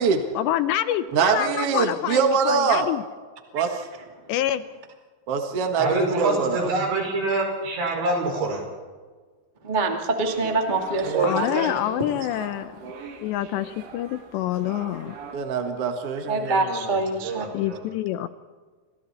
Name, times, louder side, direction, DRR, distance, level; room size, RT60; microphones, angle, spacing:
voice 1, 0.4-3.0 4.3-4.6 11.2-12.7 13.2-15.2 17.5-18.3, left 12 dB, 80° left, 12 dB, 2.8 m, -26 dB
voice 2, 1.1-2.9 3.5-3.8 5.3-6.7 15.3-17.0, right 5 dB, 55° right, 5 dB, 1.6 m, -24 dB
voice 3, 5.8-8.6 11.0-11.7 17.2-17.8, right 2 dB, 70° right, 1 dB, 7.9 m, -26 dB
voice 4, 9.6-11.8 16.3-17.5, right 3 dB, 25° right, 3 dB, 1.0 m, -25 dB
sound 1, 10.3-15.3, right 5 dB, 90° right, 5.1 m, -42 dB
29.5 x 27.0 x 4.3 m, 1.4 s
omnidirectional pair, 5.4 m